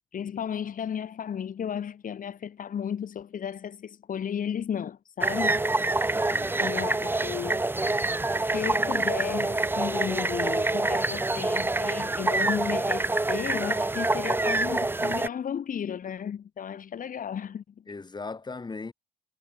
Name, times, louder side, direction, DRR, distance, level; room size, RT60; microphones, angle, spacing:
voice 1, 0.1-5.6 6.6-7.8 8.4-17.8, left 8 dB, 55° left, 3.7 m, -34 dB
sound 1, 5.2-15.3, right 2 dB, 10° right, 0.9 m, -26 dB
voice 2, 6.1-6.6 17.9-18.9, left 4 dB, 25° left, 7.9 m, -38 dB
cardioid pair, 95°, 17 cm